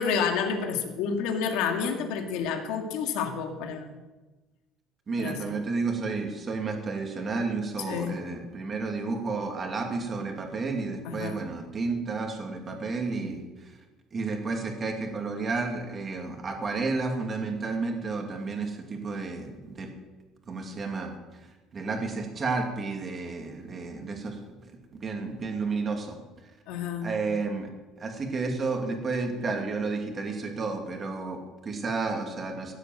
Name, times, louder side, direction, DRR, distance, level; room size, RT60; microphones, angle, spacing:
voice 1, 0.0-3.9 5.2-5.5 7.9-8.2 11.0-11.4 26.7-27.1, left 6 dB, 75° left, 3 dB, 2.1 m, -29 dB
voice 2, 5.1-13.7 14.1-19.9 20.5-21.2 21.7-26.2 27.0-27.7 28.0-32.7, right 3 dB, 25° right, 3 dB, 2.4 m, -31 dB
16.5 x 8.2 x 7.8 m, 1.2 s
cardioid pair, 155°, 0 cm